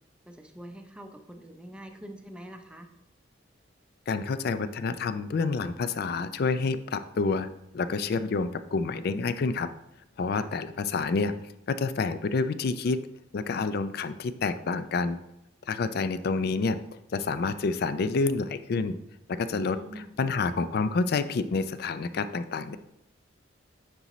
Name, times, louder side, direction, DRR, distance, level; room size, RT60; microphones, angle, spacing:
voice 1, 0.3-2.9 10.4-10.5 19.5-20.2, right 1 dB, 5° right, 4 dB, 0.5 m, -45 dB
voice 2, 4.1-7.5 7.7-9.7 10.2-11.3 11.7-13.0 13.3-15.2 15.7-16.8 17.1-19.0 19.3-19.8 20.2-22.8, left 4 dB, 55° left, 12 dB, 0.4 m, -28 dB
9.6 x 4.0 x 3.1 m, 0.82 s
head